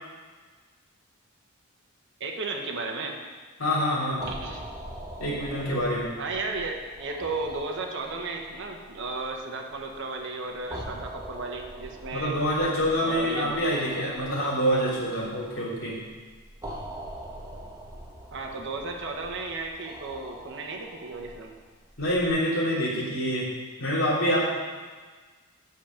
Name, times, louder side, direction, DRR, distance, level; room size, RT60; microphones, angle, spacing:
voice 1, 2.2-3.2 4.3-4.6 6.2-12.4 13.0-13.5 18.3-21.5, right 3 dB, 60° right, 2 dB, 1.2 m, -34 dB
voice 2, 3.6-4.2 5.2-6.1 12.1-16.0 22.0-23.5 23.8-24.4, equal, 70° left, -6 dB, 3.3 m, -26 dB
sound 1, 4.2-22.3, right 1 dB, 15° right, 1.3 m, -44 dB
8.2 x 6.6 x 5.9 m, 1.4 s
head